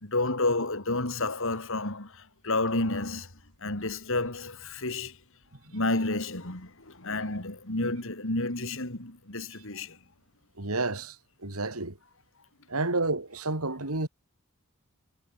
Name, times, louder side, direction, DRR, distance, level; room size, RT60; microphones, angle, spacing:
voice 1, 0.0-3.3 3.6-5.1 5.7-10.0, left 2 dB, 65° left, 4.0 m, -30 dB
voice 2, 10.6-11.2 11.4-12.0 12.7-14.1, right 2 dB, 80° right, 3.1 m, -30 dB
head